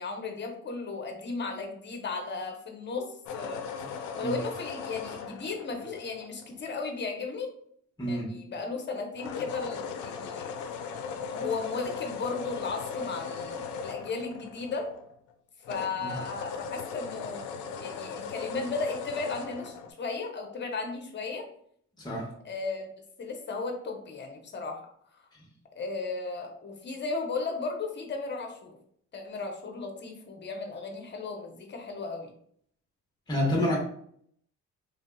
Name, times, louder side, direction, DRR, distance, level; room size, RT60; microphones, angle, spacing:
voice 1, 0.0-3.1 3.3-7.5 8.1-10.7 11.3-14.9 15.7-21.5 22.4-22.9 23.2-24.8 25.1-25.2 25.7-28.7 29.1-32.3, left 4 dB, 35° left, 0.8 m, -35 dB
sound 1, 3.3-6.7 9.2-15.3 15.6-19.9, left 6 dB, 80° left, 0.5 m, -38 dB
voice 2, 22.0-22.4 33.3-33.8, left 1 dB, 15° left, 1.0 m, -28 dB
3.4 x 2.6 x 2.3 m
cardioid pair, 90°, 30 cm